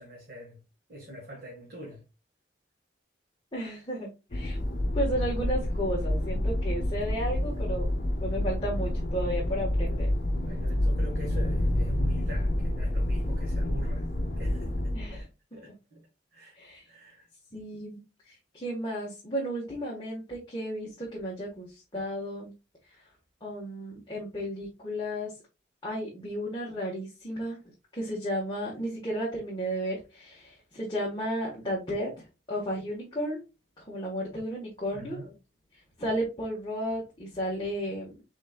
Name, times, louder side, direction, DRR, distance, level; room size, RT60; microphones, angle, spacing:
voice 1, 0.0-2.0 10.3-14.1 14.4-16.6 16.8-17.3 34.9-35.4, right 2 dB, 55° right, 1.7 m, -44 dB
voice 2, 3.5-4.6 4.9-7.9 8.2-10.1 14.9-15.2 15.7-15.8 16.5-16.8 17.5-22.5 23.4-25.3 25.8-27.6 27.9-33.4 33.8-35.2 36.0-38.2, equal, 25° left, 1.4 m, -33 dB
sound 1, 4.3-15.2, left 1 dB, 50° left, 1.0 m, -28 dB
5.2 x 3.9 x 2.4 m
head